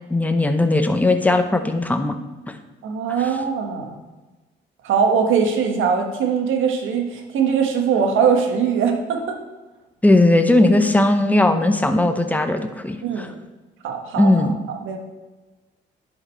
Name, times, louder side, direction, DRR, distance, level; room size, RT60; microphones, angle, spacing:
voice 1, 0.1-2.2 10.0-13.0 14.2-14.6, left 2 dB, 10° left, 7 dB, 0.8 m, -17 dB
voice 2, 2.8-4.0 4.8-9.4 13.0-13.4 13.8-15.0, right 6 dB, 80° right, 4 dB, 1.4 m, -21 dB
10.5 x 5.1 x 4.4 m, 1.2 s
cardioid pair, 90°, 20 cm